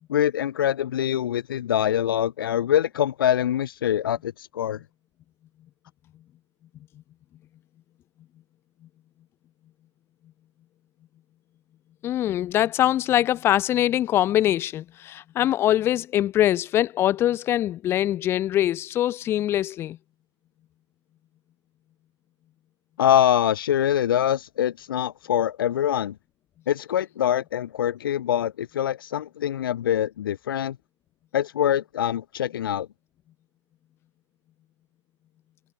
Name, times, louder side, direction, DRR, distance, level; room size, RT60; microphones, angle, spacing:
voice 1, 0.1-4.8 23.0-26.1 26.7-30.8 31.3-32.9, left 10 dB, 45° left, 2.6 m, -24 dB
voice 2, 12.0-20.0, left 12 dB, 15° left, 1.1 m, -23 dB
figure-of-eight pair, 130°, 16 cm